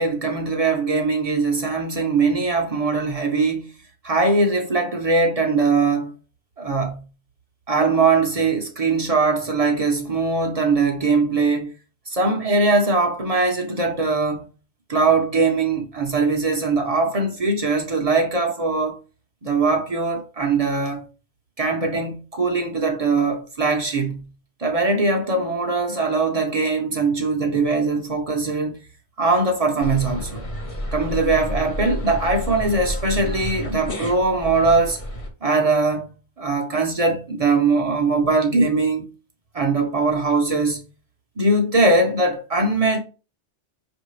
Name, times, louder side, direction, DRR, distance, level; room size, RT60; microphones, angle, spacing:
voice 1, 0.0-3.7 4.0-6.1 6.6-7.0 7.7-11.7 12.1-14.5 14.9-19.0 19.4-21.0 21.6-24.3 24.6-28.8 29.2-30.4 30.9-35.0 35.4-36.1 36.4-39.1 39.5-40.8 41.4-43.0, right 3 dB, 40° right, 0.6 m, -21 dB
sound 1, 29.8-35.3, equal, 35° left, 0.7 m, -30 dB
5.4 x 2.6 x 3.0 m
omnidirectional pair, 1.2 m